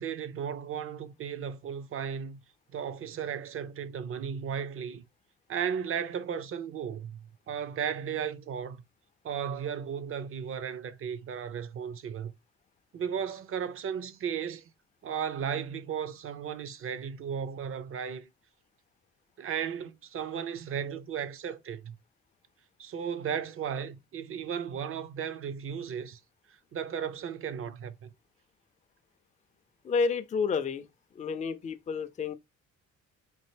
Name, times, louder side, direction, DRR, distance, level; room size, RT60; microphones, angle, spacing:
voice 1, 0.0-2.4 2.7-5.0 5.5-7.2 7.5-8.8 9.2-12.3 12.9-14.6 15.0-18.3 19.4-22.0 22.8-26.2 26.7-28.1, right 7 dB, 45° right, 0.5 m, -35 dB
voice 2, 29.8-30.9 31.1-32.3, left 5 dB, 25° left, 0.4 m, -30 dB
4.4 x 2.5 x 3.2 m
cardioid pair, 90°, 30 cm